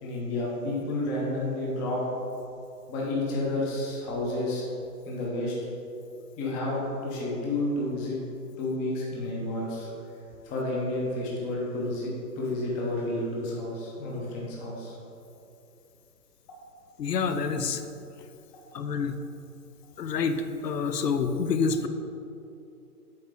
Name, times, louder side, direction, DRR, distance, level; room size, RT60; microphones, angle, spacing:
voice 1, 0.0-2.0 2.9-4.6 5.1-5.6 6.4-8.2 8.6-9.9 10.4-12.1 12.4-14.9, left 2 dB, 15° left, -4 dB, 0.8 m, -30 dB
voice 2, 17.0-17.8 18.7-19.2 20.0-21.9, left 5 dB, 85° left, 9 dB, 0.7 m, -27 dB
7.8 x 4.4 x 3.7 m, 2.8 s
hypercardioid pair, 135°, 47 cm